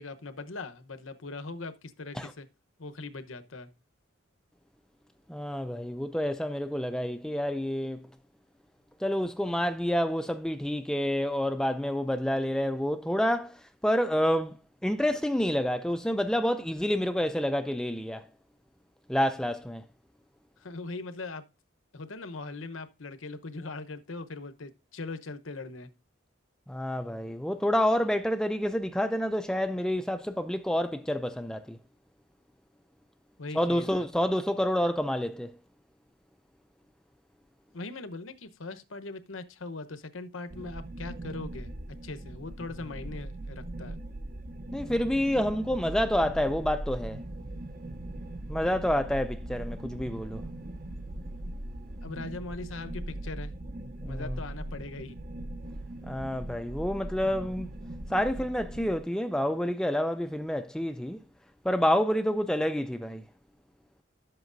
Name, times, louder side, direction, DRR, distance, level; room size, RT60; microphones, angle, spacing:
voice 1, 0.0-2.5 2.8-3.7 20.6-21.4 21.9-25.9 33.4-34.1 37.7-41.7 42.0-44.0 52.0-53.5 54.0-55.2, left 3 dB, 90° left, 1.0 m, -40 dB
voice 2, 5.3-8.1 9.0-14.5 14.8-18.2 19.1-19.8 26.7-31.8 33.5-35.5 44.7-47.2 48.5-50.4 54.0-54.4 56.0-57.7 58.1-61.2 61.6-63.2, equal, 5° left, 0.3 m, -28 dB
sound 1, 40.5-59.0, right 1 dB, 45° right, 0.7 m, -40 dB
11.5 x 7.8 x 2.6 m
head